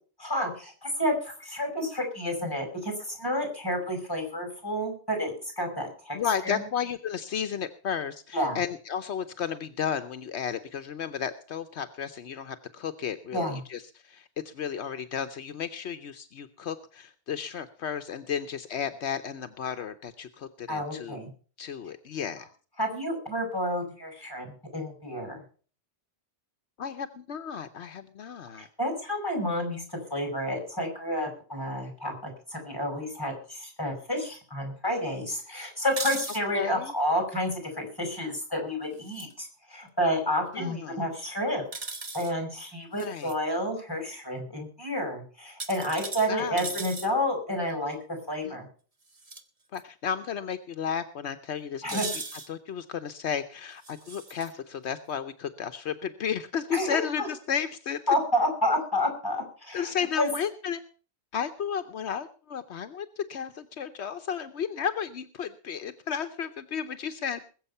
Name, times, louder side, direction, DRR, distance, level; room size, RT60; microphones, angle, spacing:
voice 1, 0.2-6.2 6.4-6.6 8.3-8.6 13.3-13.6 20.7-21.3 22.8-25.4 28.6-41.6 42.1-48.7 51.8-52.1 56.7-57.3 58.1-59.9 60.2-60.3, equal, 20° left, 3 dB, 5.7 m, -30 dB
voice 2, 6.1-21.2 21.6-22.5 26.8-28.7 36.5-36.9 40.5-41.0 43.0-43.3 46.3-46.7 48.4-48.6 49.7-52.0 52.5-58.0 59.7-60.8 61.3-67.4, left 7 dB, 75° left, 10 dB, 1.1 m, -33 dB
sound 1, 35.9-36.4 39.0-39.3 41.7-42.3 43.0-43.3 45.6-47.1 49.1-49.4 49.8-49.9 51.9-52.5 53.8-54.5, right 3 dB, 35° right, 1.4 m, -37 dB
21.0 x 7.7 x 5.6 m, 0.40 s
omnidirectional pair, 1.1 m